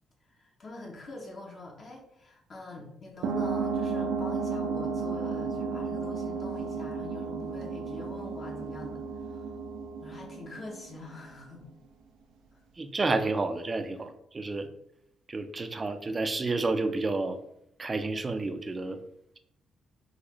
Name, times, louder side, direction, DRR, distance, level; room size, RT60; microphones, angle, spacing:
voice 1, 0.3-9.5 10.0-11.6, left 2 dB, 45° left, -2 dB, 0.7 m, -44 dB
sound 1, 3.2-11.4, right 5 dB, 85° right, 0.5 m, -33 dB
voice 2, 12.8-14.7 15.3-17.4 17.8-19.0, right 3 dB, 30° right, 8 dB, 0.4 m, -30 dB
3.9 x 2.5 x 3.0 m, 0.75 s
cardioid pair, 90°, 0 cm